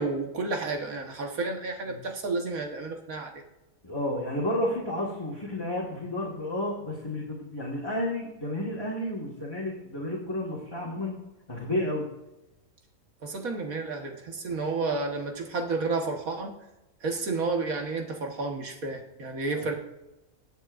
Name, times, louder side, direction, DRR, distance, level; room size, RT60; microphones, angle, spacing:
voice 1, 0.0-3.3 13.2-16.6 17.0-19.7, right 3 dB, 85° right, 2 dB, 1.9 m, -31 dB
voice 2, 3.8-11.2 11.5-12.1 19.5-19.7, left 1 dB, 15° left, -5 dB, 1.8 m, -31 dB
22.0 x 8.3 x 2.6 m, 0.96 s
omnidirectional pair, 1.4 m